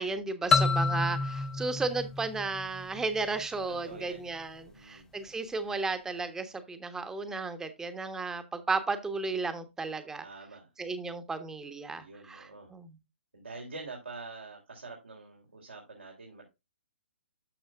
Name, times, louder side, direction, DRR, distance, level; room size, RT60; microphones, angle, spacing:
voice 1, 0.0-10.2 10.8-12.9, right 3 dB, 10° right, 1.3 m, -34 dB
sound 1, 0.5-3.2, left 4 dB, 10° left, 0.4 m, -28 dB
voice 2, 0.8-1.3 3.7-4.3 4.7-5.1 10.2-10.7 11.9-12.7 13.3-16.4, right 3 dB, 80° right, 3.5 m, -46 dB
13.0 x 6.1 x 2.4 m
figure-of-eight pair, 130°, 6 cm